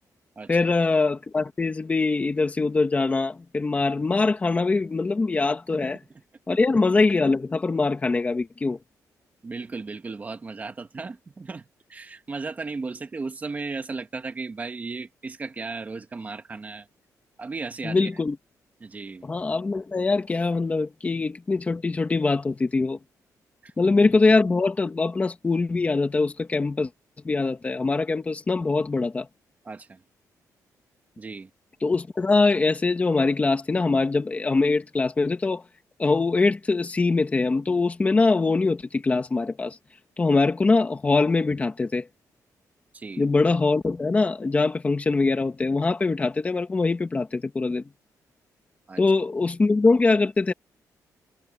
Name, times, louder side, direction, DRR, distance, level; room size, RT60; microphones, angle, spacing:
voice 1, 0.5-6.0 6.5-8.8 17.8-18.4 19.2-23.0 23.8-26.9 27.2-29.3 31.8-35.6 36.0-39.8 40.2-42.1 43.2-47.8 49.0-50.5, left 3 dB, 20° left, 2.3 m, -23 dB
voice 2, 9.4-16.9 17.4-18.2 18.8-19.3 23.6-23.9 29.7-30.0 31.2-31.5 42.9-43.3 48.9-49.0, right 4 dB, 25° right, 1.8 m, -35 dB
wide cardioid pair, 160°, 7 cm